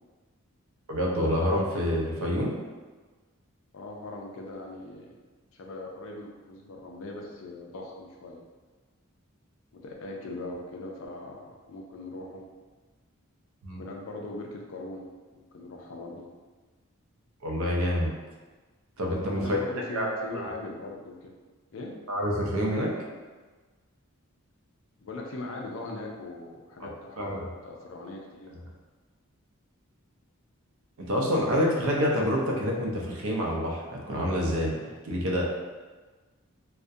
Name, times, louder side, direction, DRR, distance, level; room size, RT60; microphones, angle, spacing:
voice 1, 0.9-2.5 13.6-13.8 17.4-18.1 19.0-19.6 19.9-20.1 20.3-20.5 22.1-22.9 27.2-27.4 31.1-34.7 35.0-35.4, equal, 75° right, -2 dB, 0.5 m, -27 dB
voice 2, 3.7-5.1 5.5-8.4 9.7-12.5 13.8-15.1 15.4-16.3 19.3-21.4 21.7-22.0 25.0-28.5, left 2 dB, 65° left, 0 dB, 0.4 m, -40 dB
2.4 x 2.1 x 2.6 m, 1.3 s
head